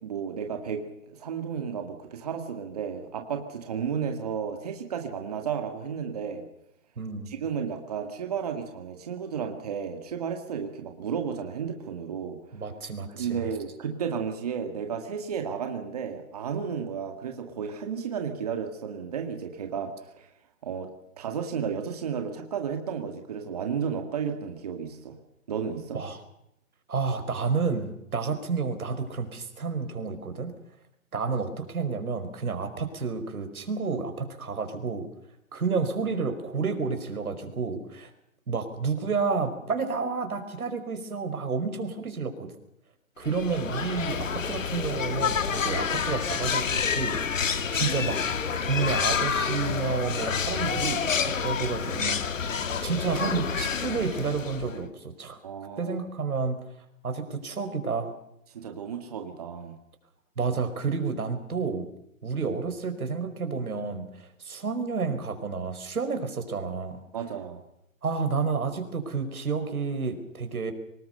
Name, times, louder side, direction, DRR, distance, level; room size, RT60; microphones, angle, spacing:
voice 1, 0.0-6.4 7.3-12.4 13.1-19.9 20.2-20.3 20.6-20.9 21.2-25.2 25.5-26.0 55.4-56.0 58.5-59.7 67.1-67.6, right 7 dB, 25° right, 4 dB, 2.0 m, -33 dB
voice 2, 7.0-7.3 12.5-13.4 25.9-26.2 26.9-30.5 31.1-35.1 35.5-38.1 38.5-42.5 43.2-47.4 47.7-48.2 48.6-55.4 55.8-56.6 57.0-58.1 60.4-61.9 62.2-67.0 68.0-70.7, right 5 dB, 90° right, 7 dB, 5.2 m, -30 dB
sound 1, 43.2-54.9, left 6 dB, 65° left, 2.1 m, -28 dB
25.0 x 20.0 x 6.7 m, 0.79 s
hypercardioid pair, 180°, 42 cm